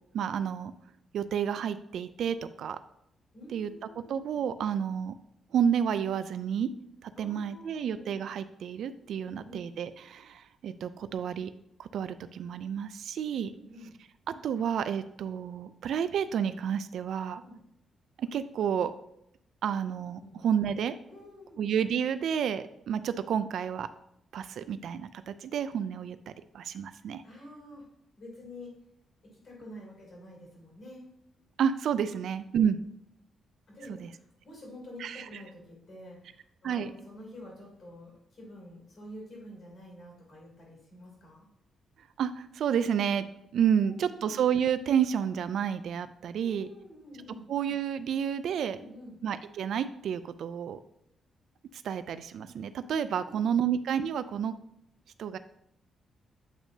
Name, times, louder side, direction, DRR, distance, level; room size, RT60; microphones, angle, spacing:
voice 1, 0.1-0.7 1.1-2.8 3.5-3.7 4.1-5.2 5.5-6.7 7.0-11.5 11.8-13.5 14.3-17.4 18.2-18.9 19.6-21.0 21.6-23.9 24.3-27.2 31.6-32.8 34.0-34.1 35.0-35.2 36.6-36.9 42.2-43.3 43.5-46.7 47.5-48.8 49.2-50.8 51.8-54.6 55.2-55.4, right 8 dB, 60° right, 13 dB, 0.3 m, -30 dB
voice 2, 3.3-4.4 7.2-8.1 9.2-9.6 13.5-13.9 17.4-17.6 20.2-20.4 21.1-21.6 27.2-27.8 28.2-28.7 29.2-31.0 33.7-41.5 43.8-44.3 46.4-47.5 48.7-49.2 53.3-53.4, left 1 dB, 40° left, -2 dB, 2.9 m, -48 dB
8.4 x 5.9 x 2.7 m, 0.77 s
wide cardioid pair, 180°, 0 cm